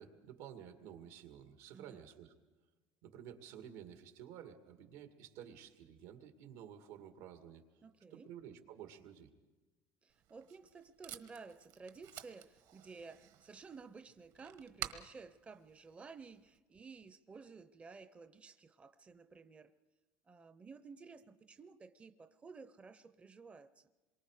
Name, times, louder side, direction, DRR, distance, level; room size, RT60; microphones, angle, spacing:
voice 1, 0.0-2.3 3.0-7.6 8.1-9.3, right 9 dB, 90° right, 2.2 m, -52 dB
voice 2, 1.7-2.0 7.8-8.3 10.0-19.7 20.2-23.9, right 4 dB, 15° right, 0.6 m, -54 dB
Packing tape duct tape, 10.1-16.6, right 12 dB, 65° right, 1.3 m, -51 dB
27.0 x 23.5 x 4.9 m
cardioid pair, 145°, 7 cm